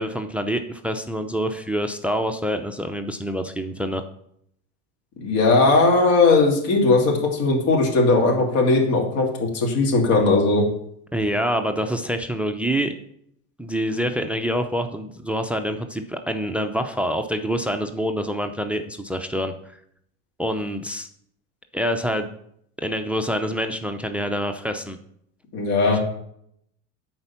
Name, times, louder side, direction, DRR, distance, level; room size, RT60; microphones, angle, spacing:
voice 1, 0.0-4.0 11.1-13.0 13.6-19.5 20.4-21.1 21.7-22.3 22.8-25.0 25.9-26.0, equal, 5° right, 7 dB, 0.5 m, -26 dB
voice 2, 5.2-10.6 25.5-26.0, left 3 dB, 55° left, -1 dB, 2.7 m, -18 dB
10.0 x 4.5 x 7.1 m, 0.72 s
supercardioid pair, 120°, 34 cm